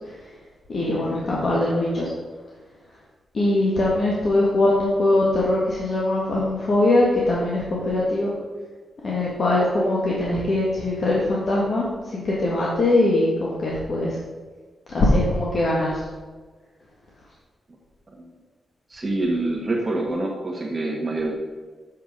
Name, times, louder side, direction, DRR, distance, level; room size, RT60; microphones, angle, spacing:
voice 1, 0.7-2.1 3.3-8.3 9.0-11.9 12.1-14.2 14.9-16.0, left 2 dB, 55° left, -5 dB, 1.7 m, -21 dB
voice 2, 18.9-21.3, right 2 dB, 30° right, -1 dB, 1.3 m, -26 dB
7.4 x 6.0 x 5.1 m, 1.4 s
cardioid pair, 85°, 0 cm